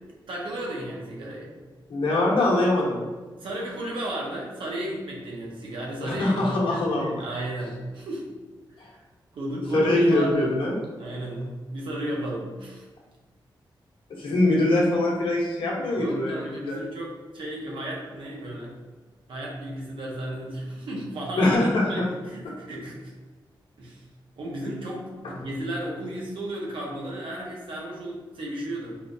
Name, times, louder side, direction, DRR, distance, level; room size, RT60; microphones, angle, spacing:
voice 1, 0.3-1.5 3.3-8.2 8.7-9.0 9.3-10.5 11.0-12.9 16.0-18.7 19.3-21.6 21.9-23.1 23.8-24.0 24.4-29.0, right 1 dB, 85° right, -3 dB, 0.9 m, -33 dB
voice 2, 1.9-3.0 6.0-7.2 8.8-8.9 9.7-10.8 14.2-16.8 21.4-22.1, left 2 dB, 85° left, -3 dB, 0.8 m, -23 dB
4.4 x 2.2 x 2.6 m, 1.3 s
wide cardioid pair, 135°, 9 cm